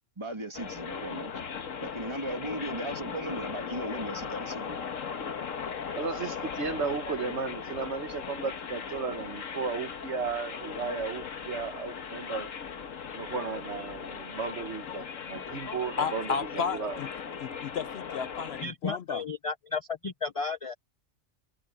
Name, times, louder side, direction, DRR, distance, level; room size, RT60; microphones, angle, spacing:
voice 1, 0.2-1.3 1.8-4.8, right 1 dB, 20° right, 2.6 m, -37 dB
sound 1, 0.5-18.7, left 6 dB, 85° left, 1.7 m, -38 dB
voice 2, 5.9-12.5 13.1-17.0, right 5 dB, 60° right, 1.4 m, -35 dB
voice 3, 16.0-17.1 17.4-19.2, left 6 dB, 60° left, 0.8 m, -33 dB
voice 4, 18.6-20.7, left 4 dB, 40° left, 0.4 m, -33 dB
omnidirectional pair, 1.3 m